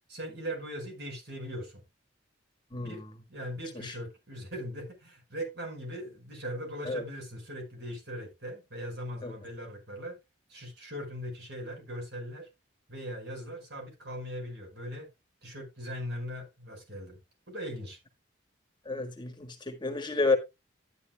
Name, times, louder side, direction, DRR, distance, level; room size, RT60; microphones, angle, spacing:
voice 1, 0.1-1.8 2.7-3.0 3.3-10.2 10.5-12.5 12.9-15.1 15.4-17.2 17.5-18.0, equal, 55° right, 5.3 m, -40 dB
voice 2, 2.7-3.0 3.8-4.0 6.8-7.0 9.2-9.3 18.8-20.4, left 3 dB, 20° left, 1.4 m, -30 dB
12.5 x 9.7 x 2.2 m
head